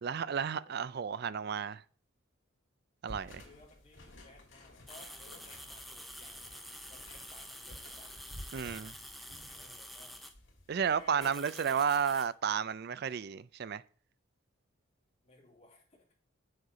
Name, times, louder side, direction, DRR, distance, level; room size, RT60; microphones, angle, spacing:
voice 1, 0.0-1.8 3.0-3.4 8.5-8.9 10.7-13.8, right 7 dB, 50° right, 0.4 m, -32 dB
voice 2, 0.6-0.9 3.4-6.6 6.9-8.1 8.6-8.8 9.5-10.2 10.9-11.7 13.0-13.2 15.2-16.1, left 2 dB, 30° left, 3.0 m, -59 dB
sound 1, 3.1-11.3, left 1 dB, 60° left, 2.4 m, -53 dB
sound 2, 4.9-10.3 11.2-12.3, equal, ahead, 0.6 m, -48 dB
7.2 x 6.5 x 4.9 m
head